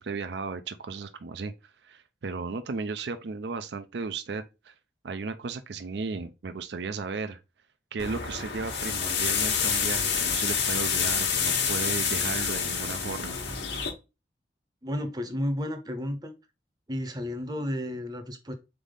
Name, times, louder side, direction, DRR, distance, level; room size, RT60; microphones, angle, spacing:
voice 1, 0.0-1.5 1.8-4.7 5.0-7.4 7.9-13.4, right 4 dB, 70° right, 0.5 m, -35 dB
sound 1, 8.0-13.9, left 6 dB, 70° left, 1.2 m, -28 dB
voice 2, 14.8-16.3 16.9-18.5, left 1 dB, 20° right, 0.7 m, -32 dB
4.1 x 3.4 x 3.7 m
head